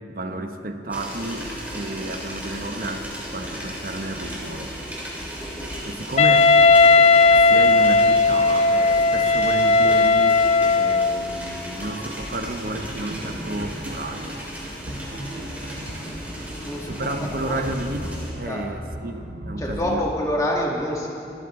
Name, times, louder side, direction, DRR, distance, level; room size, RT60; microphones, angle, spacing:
voice 1, 0.1-4.7 5.9-6.5 7.3-10.4 10.7-14.4 16.9-18.0 18.4-20.1, right 1 dB, 50° right, 6 dB, 1.0 m, -31 dB
sound 1, 0.9-18.3, equal, 10° right, 3.1 m, -35 dB
Wind instrument woodwind instrument, 6.2-11.2, left 3 dB, 35° left, 0.4 m, -16 dB
sound 2, 11.8-20.0, equal, 85° right, 1.7 m, -37 dB
voice 2, 16.6-17.6 18.4-18.6 19.6-21.1, left 1 dB, 20° left, -2 dB, 2.1 m, -27 dB
25.0 x 14.0 x 3.9 m, 2.7 s
head